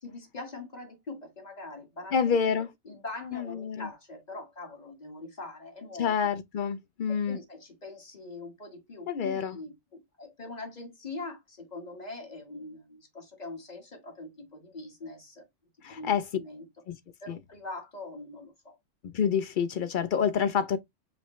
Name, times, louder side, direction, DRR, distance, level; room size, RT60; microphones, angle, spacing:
voice 1, 0.0-2.4 2.8-6.3 7.3-15.5 15.9-16.7 17.2-18.8, left 3 dB, 30° left, 1.6 m, -43 dB
voice 2, 2.1-2.7 3.3-3.9 6.0-7.4 9.1-9.6 15.8-16.2 16.9-17.0 17.3-17.4 19.0-20.8, left 7 dB, 75° left, 0.4 m, -28 dB
5.1 x 3.2 x 3.0 m
omnidirectional pair, 1.4 m